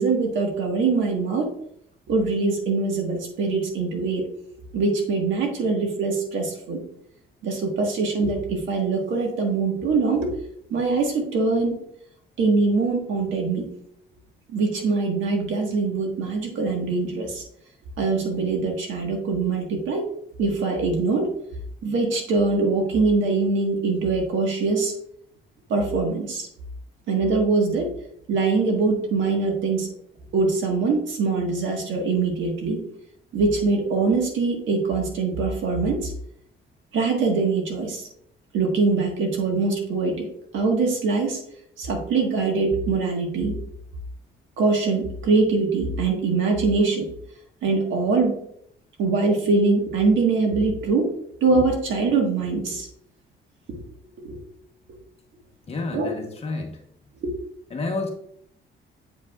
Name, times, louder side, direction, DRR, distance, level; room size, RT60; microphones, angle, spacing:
voice 1, 0.0-1.5 2.1-4.3 4.7-6.8 7.4-10.3 10.7-11.8 12.4-13.7 14.5-17.4 18.0-20.1 20.4-21.3 21.8-24.9 25.7-26.5 27.1-27.9 28.3-29.9 30.3-32.8 33.3-36.1 36.9-38.1 38.5-40.3 40.5-41.4 41.8-43.5 44.6-47.1 47.6-48.4 49.0-51.1 51.4-52.9 54.2-54.4 55.9-56.1 57.2-57.3, right 4 dB, 75° right, 2 dB, 1.5 m, -23 dB
voice 2, 55.7-56.8 57.7-58.1, left 3 dB, 30° left, 2 dB, 1.1 m, -29 dB
7.9 x 5.1 x 2.4 m, 0.70 s
cardioid pair, 165°, 20 cm